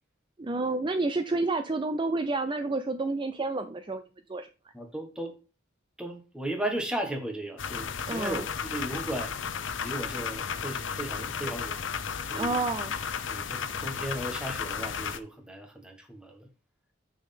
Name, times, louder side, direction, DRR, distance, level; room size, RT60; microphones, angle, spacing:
voice 1, 0.4-4.0 4.3-4.5 8.1-8.4 12.3-12.9, right 3 dB, 25° right, 9 dB, 0.5 m, -29 dB
voice 2, 4.7-5.3 6.0-8.4 8.7-9.3 9.8-11.8 12.3-12.6 13.3-16.5, right 1 dB, 5° right, 3 dB, 1.5 m, -36 dB
sound 1, 7.6-15.2, left 6 dB, 80° left, 0.7 m, -34 dB
7.7 x 6.3 x 3.5 m, 0.33 s
head